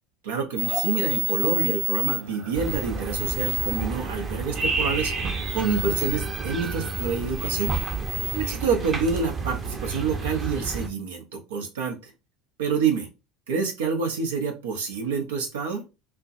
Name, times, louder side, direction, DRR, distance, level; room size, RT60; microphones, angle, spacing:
voice 1, 0.2-7.8 8.3-12.1 12.6-13.1 13.5-15.8, right 5 dB, 90° right, 2 dB, 0.8 m, -27 dB
sound 1, 0.6-8.5, right 2 dB, 55° right, 1.1 m, -30 dB
sound 2, 2.5-10.9, right 4 dB, 30° right, 0.7 m, -32 dB
4.4 x 2.1 x 2.6 m, 0.27 s
supercardioid pair, 95°, 0 cm